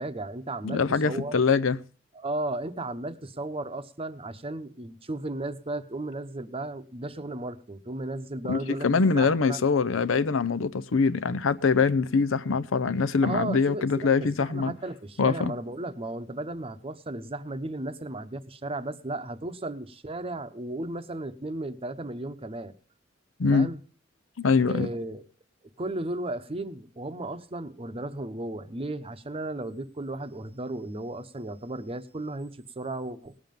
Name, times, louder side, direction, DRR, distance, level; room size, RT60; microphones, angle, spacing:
voice 1, 0.0-1.3 2.1-8.9 9.1-9.6 13.2-22.7 23.5-23.8 24.7-25.2 25.8-33.3, right 2 dB, 30° right, 0.9 m, -35 dB
voice 2, 0.6-1.8 8.5-14.7 15.2-15.5 23.4-23.7 24.4-24.9, left 4 dB, 80° left, 0.6 m, -23 dB
18.5 x 7.6 x 5.2 m
head